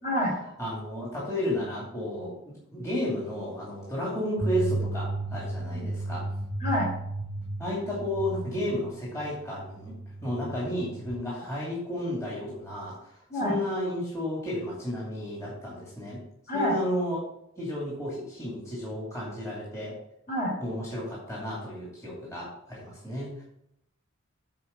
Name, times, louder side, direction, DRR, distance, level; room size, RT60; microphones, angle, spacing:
voice 1, 0.0-0.4 5.7-5.9 6.6-6.9 13.3-13.5 16.5-16.8 20.3-20.5, equal, 40° left, -2 dB, 3.4 m, -27 dB
voice 2, 0.6-6.2 7.6-9.9 10.2-13.0 13.4-16.2 16.5-17.2 17.6-20.0 20.6-23.4, left 1 dB, 15° left, -6 dB, 2.5 m, -32 dB
sound 1, 4.4-11.2, right 2 dB, 20° right, 0.9 m, -34 dB
8.5 x 4.7 x 6.5 m, 0.79 s
head